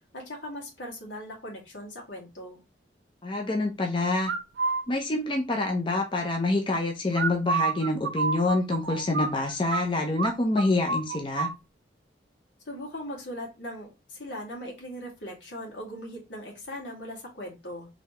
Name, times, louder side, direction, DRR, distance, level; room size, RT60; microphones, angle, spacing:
voice 1, 0.1-2.6 12.7-17.9, equal, 85° left, -1 dB, 2.1 m, -39 dB
voice 2, 3.2-4.3 4.9-11.5, left 2 dB, 25° left, 1 dB, 0.6 m, -26 dB
sound 1, 4.2-4.8 7.1-9.8 10.2-10.3 10.6-11.5, right 4 dB, 80° right, 0.5 m, -28 dB
4.1 x 3.2 x 3.0 m, 0.24 s
head